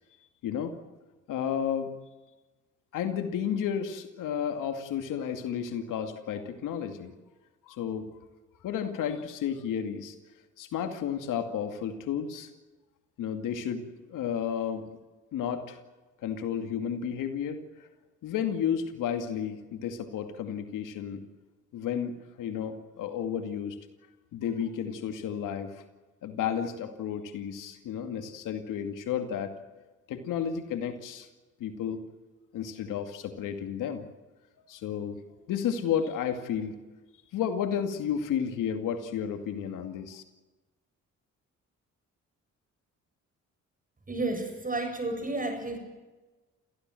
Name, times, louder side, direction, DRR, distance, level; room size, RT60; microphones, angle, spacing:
voice 1, 0.4-0.8 1.3-1.9 2.9-7.1 7.6-8.1 8.6-10.1 10.6-12.5 13.2-14.8 15.3-15.8 16.2-17.9 18.2-21.2 21.7-23.8 24.3-25.8 26.2-29.5 30.1-31.3 31.6-32.0 32.5-34.1 34.7-35.2 35.5-36.8 37.3-40.2, left 8 dB, 85° left, 7 dB, 2.4 m, -32 dB
voice 2, 44.1-45.8, right 2 dB, 25° right, 6 dB, 7.6 m, -31 dB
29.0 x 15.5 x 7.8 m, 1.2 s
cardioid pair, 75°, 31 cm